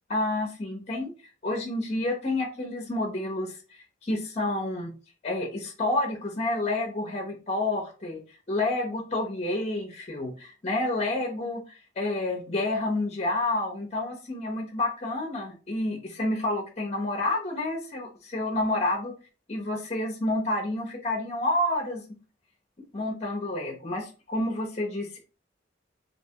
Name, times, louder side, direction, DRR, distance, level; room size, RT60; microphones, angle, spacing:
voice 1, 0.1-1.1 1.4-4.9 5.2-8.2 8.5-19.1 19.5-22.0 22.9-25.2, left 2 dB, 35° left, 2 dB, 0.7 m, -29 dB
3.3 x 2.8 x 2.7 m, 0.33 s
head